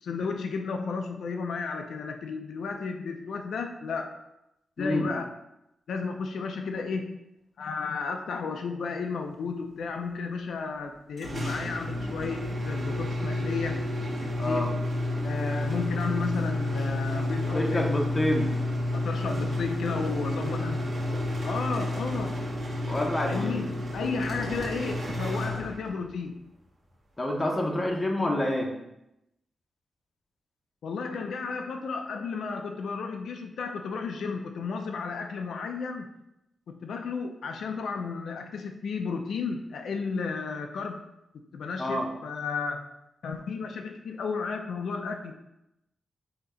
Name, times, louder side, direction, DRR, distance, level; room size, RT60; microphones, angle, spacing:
voice 1, 0.0-4.2 4.8-5.3 5.9-7.2 7.6-13.9 14.2-14.8 15.2-17.9 18.9-20.8 21.4-22.4 23.2-26.3 30.8-36.0 36.7-41.0 41.5-42.9 43.2-45.3, left 5 dB, 80° left, 4 dB, 0.5 m, -33 dB
voice 2, 4.8-5.1 14.4-14.7 17.5-18.5 22.9-23.7 27.2-28.7 41.8-42.1, left 1 dB, 15° left, 0 dB, 0.9 m, -28 dB
Automatic garage door opening, 11.2-26.1, left 1 dB, 40° right, 1.7 m, -30 dB
6.8 x 2.9 x 5.0 m, 0.86 s
wide cardioid pair, 180°, 0 cm